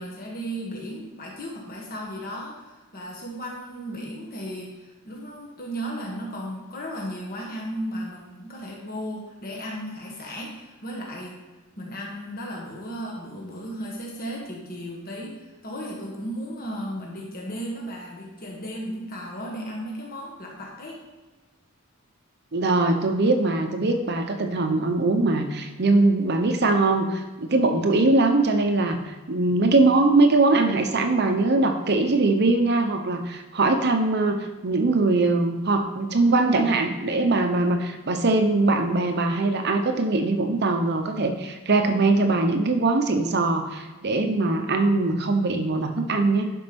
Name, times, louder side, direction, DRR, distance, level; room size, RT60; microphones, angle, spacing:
voice 1, 0.0-11.4 11.8-21.0, equal, 45° left, -2 dB, 1.6 m, -35 dB
voice 2, 22.5-46.5, right 2 dB, 50° right, 6 dB, 0.8 m, -22 dB
11.5 x 5.2 x 5.3 m, 1.3 s
head